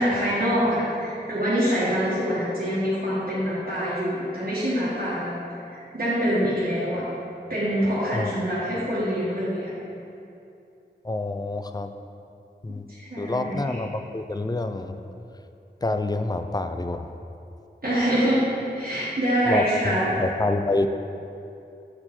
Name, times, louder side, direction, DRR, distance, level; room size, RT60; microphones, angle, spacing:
voice 1, 0.0-5.3 5.7-7.1 7.5-9.7 12.9-13.8 17.8-18.5 18.7-20.2, equal, 55° right, -11 dB, 1.6 m, -25 dB
voice 2, 11.0-11.9 12.6-12.8 13.2-15.0 15.8-17.1 19.5-20.9, left 2 dB, 20° left, 7 dB, 0.4 m, -27 dB
7.6 x 4.4 x 4.2 m, 2.7 s
wide cardioid pair, 50°, 18 cm